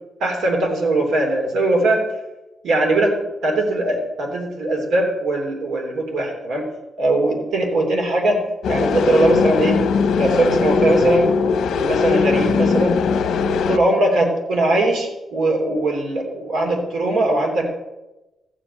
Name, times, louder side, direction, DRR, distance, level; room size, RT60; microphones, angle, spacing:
voice 1, 0.2-2.0 2.6-3.1 3.4-6.7 7.0-8.4 8.7-9.8 10.1-11.3 11.7-13.0 13.7-17.7, right 2 dB, 75° right, 1 dB, 3.3 m, -20 dB
sound 1, 8.6-13.8, left 5 dB, 75° left, 0.9 m, -19 dB
14.5 x 5.1 x 8.9 m, 1.0 s
wide cardioid pair, 170°, 0 cm